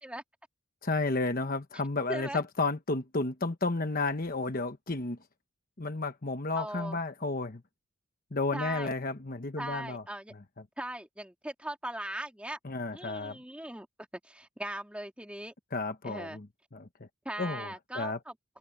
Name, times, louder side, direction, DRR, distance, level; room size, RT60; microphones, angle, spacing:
voice 1, 0.8-5.2 5.8-7.6 8.3-10.0 12.6-13.4 15.7-16.5 16.7-17.1 17.4-18.2, left 3 dB, 40° left, 1.1 m, -32 dB
voice 2, 2.1-2.4 6.6-7.0 8.5-8.9 9.6-10.3 10.8-12.6 12.9-13.9 14.2-15.5 16.0-16.4 17.2-18.6, right 1 dB, 5° right, 2.4 m, -39 dB
head